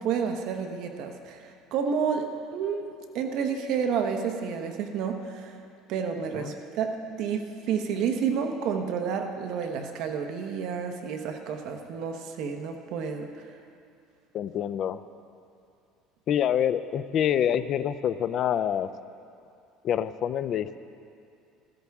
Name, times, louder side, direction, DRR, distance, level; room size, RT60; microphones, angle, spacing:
voice 1, 0.0-2.9 3.1-5.5 5.9-13.3, right 6 dB, 55° right, 5 dB, 1.0 m, -30 dB
voice 2, 14.3-15.0 16.3-18.9 19.8-20.8, left 9 dB, 40° left, 13 dB, 0.4 m, -26 dB
15.0 x 14.0 x 3.6 m, 2.4 s
cardioid pair, 150°, 0 cm